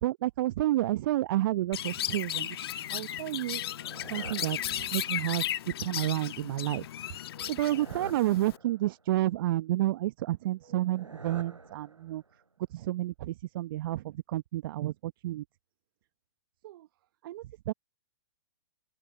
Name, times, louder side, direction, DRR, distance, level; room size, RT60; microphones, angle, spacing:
voice 1, 0.0-2.6 2.9-3.6 4.1-5.4 5.8-6.9 7.5-12.2 12.7-15.4 16.6-16.9 17.2-17.7, right 15 dB, 45° right, 1.1 m, -30 dB
Chirp tweet, 1.7-8.6, left 12 dB, 55° left, 1.5 m, -35 dB
sound 1, 3.5-5.4 7.3-9.1 10.6-12.4, right 3 dB, 85° right, 5.2 m, -48 dB
open air
figure-of-eight pair, 120°, 16 cm